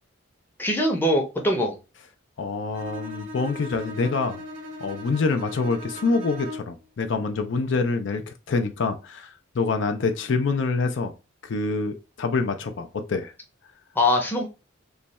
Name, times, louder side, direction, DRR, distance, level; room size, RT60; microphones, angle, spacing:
voice 1, 0.6-1.7 14.0-14.5, left 1 dB, 10° left, 0.6 m, -22 dB
voice 2, 2.4-4.4 4.8-8.2 8.5-11.1 11.4-13.3, left 4 dB, 65° left, 0.4 m, -26 dB
Bowed string instrument, 2.7-6.8, left 1 dB, 75° right, 0.8 m, -38 dB
3.2 x 2.2 x 4.0 m
head